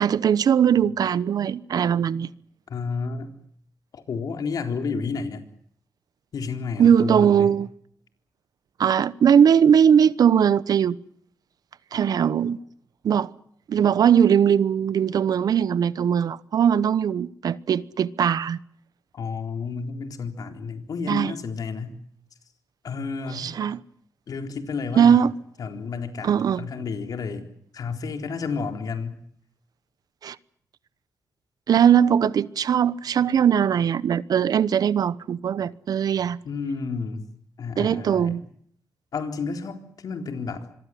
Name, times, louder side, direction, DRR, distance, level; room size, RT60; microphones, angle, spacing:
voice 1, 0.0-2.3 6.8-7.7 8.8-11.0 11.9-12.6 13.0-13.3 13.7-18.6 21.1-21.3 23.3-23.8 24.9-25.3 26.2-26.6 30.2-30.4 31.7-36.4 37.8-38.4, right 8 dB, 75° right, 1.0 m, -20 dB
voice 2, 2.7-3.3 3.9-5.4 6.3-7.6 19.1-22.0 22.8-23.5 24.3-25.3 25.6-26.3 26.6-27.5 27.7-29.2 36.4-37.3 37.6-38.4 39.1-40.7, left 5 dB, 70° left, 3.9 m, -31 dB
26.0 x 22.5 x 7.7 m
wide cardioid pair, 110°, 7 cm